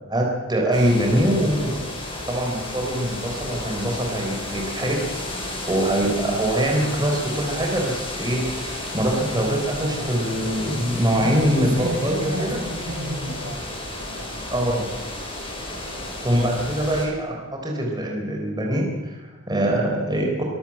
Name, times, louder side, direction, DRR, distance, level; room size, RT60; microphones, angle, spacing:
voice 1, 0.0-1.9 2.3-5.1 5.7-12.6 14.5-14.9 16.2-20.4, right 1 dB, 20° right, 0 dB, 4.0 m, -23 dB
sound 1, 0.7-17.1, left 1 dB, 25° left, 6.1 m, -32 dB
voice 2, 11.0-14.5 15.7-16.1, equal, 75° right, 1 dB, 6.5 m, -32 dB
25.5 x 14.0 x 7.8 m, 1.2 s
head